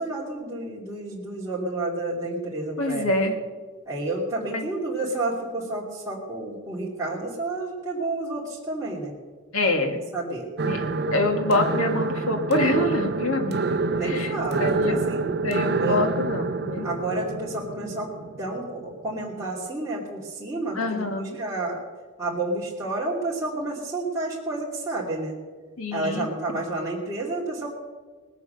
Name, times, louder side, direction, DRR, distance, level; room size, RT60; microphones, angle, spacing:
voice 1, 0.0-3.1 3.9-9.1 10.1-10.5 13.9-15.3 15.8-16.0 16.8-18.1 18.4-21.8 22.2-25.3 25.9-27.7, right 2 dB, 15° right, -7 dB, 2.8 m, -30 dB
voice 2, 2.8-3.3 4.5-4.6 9.5-10.0 10.6-10.8 11.1-13.6 14.0-14.3 14.6-15.1 15.4-16.9 20.7-21.4 25.8-26.3 26.5-26.6, left 2 dB, 80° left, 5 dB, 1.9 m, -25 dB
sound 1, 10.6-19.4, right 3 dB, 50° right, 0.6 m, -27 dB
19.5 x 8.2 x 6.7 m, 1.4 s
head